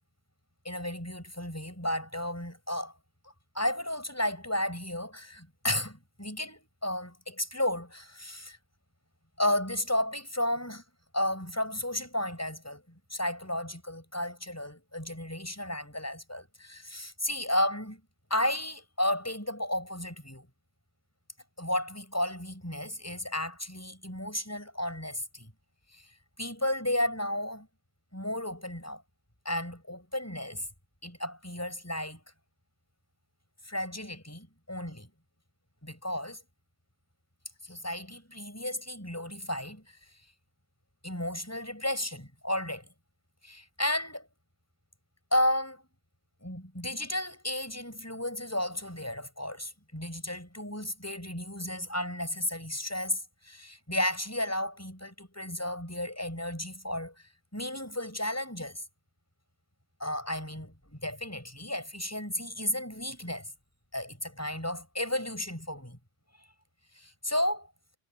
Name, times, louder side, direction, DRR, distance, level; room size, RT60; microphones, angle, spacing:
voice 1, 0.7-2.9 3.2-8.6 9.4-10.8 11.1-12.8 13.1-18.0 18.3-20.5 21.6-25.5 25.9-26.0 26.4-27.7 28.1-29.0 29.5-30.7 31.0-32.2 33.6-35.1 35.8-36.4 37.6-40.0 41.0-42.9 43.4-44.3 45.3-45.8 46.4-58.8 60.0-63.5 63.9-66.0 67.0-67.7, left 1 dB, 10° left, 7.0 m, -33 dB
omnidirectional pair, 1.2 m